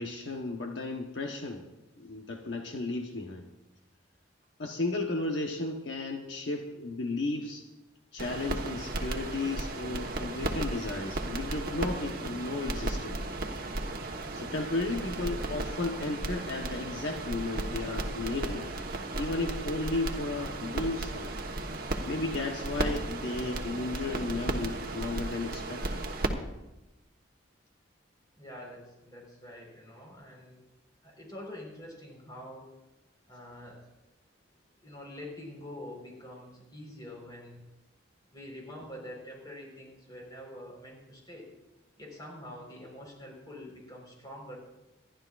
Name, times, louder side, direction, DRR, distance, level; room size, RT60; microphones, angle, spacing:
voice 1, 0.0-1.6 2.0-3.4 4.6-7.6 8.1-13.2 14.3-18.7 19.2-21.3 22.1-26.0, left 2 dB, 65° left, 2 dB, 1.1 m, -34 dB
sound 1, 8.2-26.3, right 2 dB, 50° right, 1.2 m, -35 dB
voice 2, 28.4-30.6 31.0-32.7 33.3-33.8 34.8-37.6 38.3-41.5 42.0-44.6, left 1 dB, 20° left, -1 dB, 4.3 m, -45 dB
26.5 x 11.5 x 2.5 m, 1.0 s
head